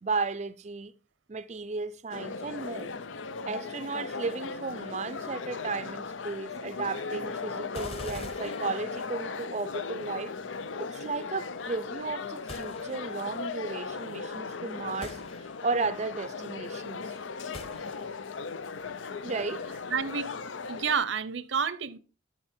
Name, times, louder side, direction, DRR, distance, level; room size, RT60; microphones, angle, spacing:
voice 1, 0.0-0.9 1.3-2.9 3.5-10.3 10.8-15.2 15.6-17.2 19.2-19.6, right 4 dB, 35° right, 0.4 m, -34 dB
sound 1, 2.1-21.0, left 4 dB, 85° left, 0.6 m, -37 dB
sound 2, 7.7-9.4 12.5-13.4 15.0-15.9 17.5-18.4, left 2 dB, 30° left, 1.2 m, -45 dB
voice 2, 19.9-20.4 20.7-22.0, right 6 dB, 85° right, 0.8 m, -29 dB
13.0 x 6.2 x 4.4 m
head